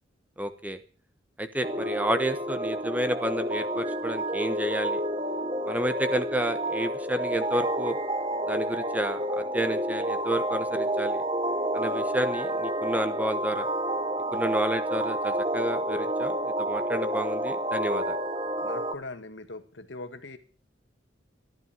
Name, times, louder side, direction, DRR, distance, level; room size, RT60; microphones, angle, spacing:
voice 1, 0.4-0.8 1.4-5.0 5.7-8.0 8.5-11.2 11.7-13.7 14.3-18.2, right 1 dB, 10° right, 10 dB, 1.0 m, -30 dB
sound 1, 1.6-18.9, right 1 dB, 30° right, 1.1 m, -29 dB
voice 2, 18.6-20.4, left 2 dB, 80° left, 8 dB, 1.9 m, -40 dB
14.0 x 11.0 x 7.3 m, 0.40 s
head